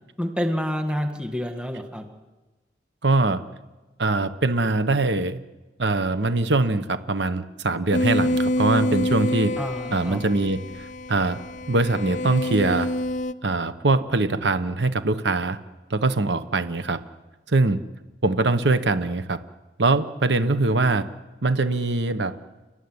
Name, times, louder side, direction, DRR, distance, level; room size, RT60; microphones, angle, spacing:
voice 1, 0.2-2.1 9.6-10.2, equal, 5° right, 5 dB, 1.9 m, -28 dB
voice 2, 3.0-3.4 4.0-5.4 5.8-9.5 9.9-11.4 11.7-12.9 13.4-15.6 15.9-17.0 17.5-17.8 18.2-19.4 19.8-21.1 21.4-22.4, right 2 dB, 80° right, 10 dB, 1.2 m, -22 dB
sound 1, 7.9-13.3, left 1 dB, 45° left, 0.6 m, -26 dB
29.5 x 13.0 x 9.7 m, 1.2 s
head